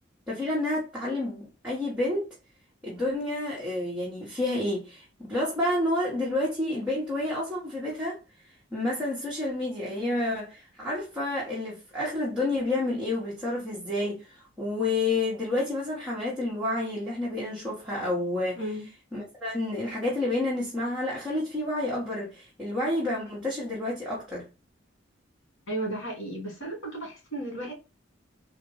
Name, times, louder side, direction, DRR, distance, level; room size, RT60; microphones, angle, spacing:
voice 1, 0.3-2.4 2.8-8.2 8.7-18.6 19.1-24.4, left 2 dB, 5° right, 1.2 m, -29 dB
voice 2, 18.6-18.9 25.7-27.7, right 1 dB, 60° left, 2.1 m, -34 dB
4.0 x 2.5 x 3.9 m
head